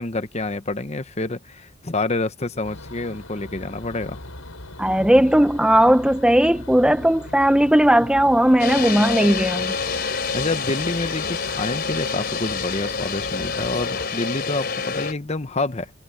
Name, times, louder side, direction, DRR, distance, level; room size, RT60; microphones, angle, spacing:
voice 1, 0.0-4.2 10.1-15.9, left 2 dB, 35° left, 1.0 m, -28 dB
sound 1, 2.6-14.1, left 2 dB, 85° left, 6.5 m, -39 dB
voice 2, 4.8-9.7, right 1 dB, 5° right, 0.7 m, -17 dB
sound 2, 8.6-15.1, left 5 dB, 50° left, 3.5 m, -27 dB
head